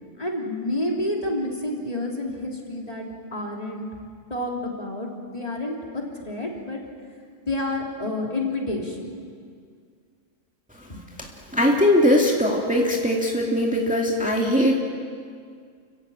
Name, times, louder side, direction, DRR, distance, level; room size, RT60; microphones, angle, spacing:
voice 1, 0.2-3.9 4.3-6.8 7.4-9.2 10.9-11.0, left 1 dB, 30° left, -1 dB, 3.4 m, -29 dB
voice 2, 11.5-14.7, left 1 dB, 5° right, -1 dB, 2.2 m, -20 dB
30.0 x 16.0 x 8.8 m, 2.1 s
omnidirectional pair, 1.2 m